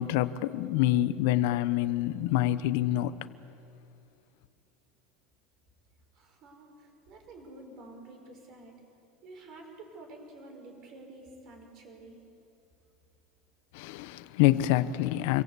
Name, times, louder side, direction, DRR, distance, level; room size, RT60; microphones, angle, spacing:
voice 1, 0.0-3.1 13.7-15.4, left 14 dB, 60° left, 1.0 m, -26 dB
voice 2, 6.2-8.7 9.2-12.2, right 2 dB, 35° right, 6.1 m, -49 dB
28.5 x 23.5 x 8.4 m
supercardioid pair, 170°, 0 cm